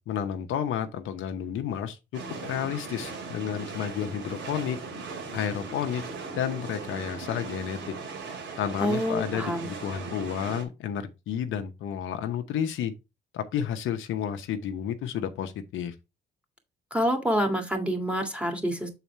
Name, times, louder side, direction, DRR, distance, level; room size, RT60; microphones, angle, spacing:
voice 1, 0.0-4.8 5.3-6.0 6.3-7.9 8.3-12.9 13.3-15.9, left 9 dB, 80° left, 0.8 m, -31 dB
sound 1, 2.1-10.6, right 4 dB, 70° right, 2.4 m, -38 dB
voice 2, 8.8-9.7 16.9-18.9, equal, 5° right, 2.0 m, -27 dB
7.0 x 4.1 x 4.4 m
cardioid pair, 90°, 20 cm